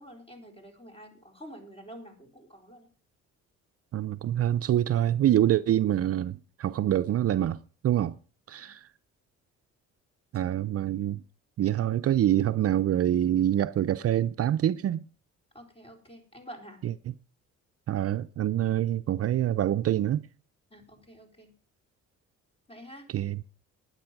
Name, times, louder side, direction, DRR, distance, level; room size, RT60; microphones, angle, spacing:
voice 1, 0.0-2.9 8.6-8.7 15.5-16.8 20.7-21.5 22.7-23.1, equal, 20° left, 4.3 m, -48 dB
voice 2, 3.9-7.6 7.8-8.2 8.5-8.9 10.3-11.2 11.6-15.1 16.8-16.9 17.9-20.3 23.1-23.4, right 11 dB, 50° right, 0.5 m, -26 dB
12.0 x 9.7 x 5.9 m
cardioid pair, 90°, 30 cm